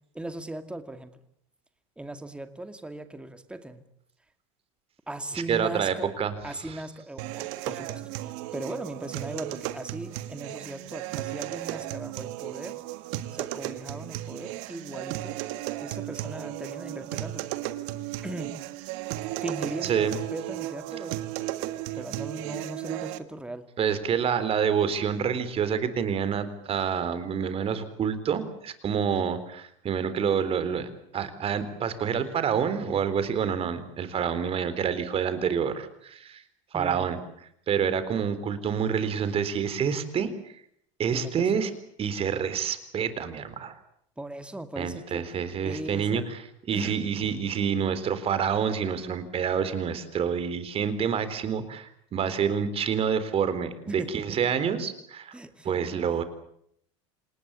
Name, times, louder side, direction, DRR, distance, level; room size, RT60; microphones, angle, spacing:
voice 1, 0.1-1.1 2.0-3.8 5.1-6.2 6.4-12.8 13.3-15.4 15.7-17.5 18.2-18.6 19.4-23.7 36.7-37.1 41.1-41.6 44.2-45.2 45.6-46.2 46.7-47.4 53.9-54.1 55.3-55.8, right 1 dB, 5° right, 9 dB, 2.3 m, -38 dB
voice 2, 5.5-6.8 19.8-20.2 23.8-36.4 36.7-37.2 37.7-40.6 41.0-41.7 42.0-43.8 44.8-46.4 46.7-55.3 55.6-56.2, right 7 dB, 40° right, 12 dB, 3.9 m, -28 dB
sound 1, 7.2-23.2, right 15 dB, 70° right, 1.7 m, -35 dB
27.5 x 19.0 x 8.5 m, 0.70 s
hypercardioid pair, 95°, 16 cm